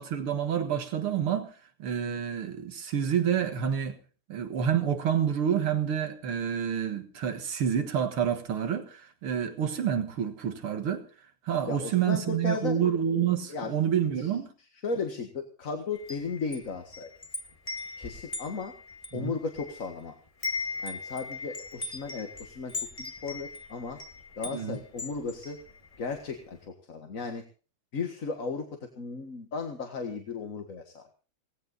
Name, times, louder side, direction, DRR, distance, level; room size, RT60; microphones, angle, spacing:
voice 1, 0.0-1.5 1.8-4.0 4.3-11.1 11.5-14.5 19.1-19.3 24.5-24.8, right 8 dB, 80° right, 2.4 m, -28 dB
voice 2, 11.7-12.8 13.5-13.7 14.2-14.3 14.8-17.1 18.0-18.7 19.1-20.2 20.8-24.0 24.4-25.6 26.0-27.4 27.9-31.1, left 4 dB, 40° left, 1.9 m, -35 dB
Wind chime, 15.9-20.0 20.3-26.2, left 4 dB, 15° left, 2.0 m, -39 dB
18.5 x 15.5 x 4.0 m
omnidirectional pair, 2.4 m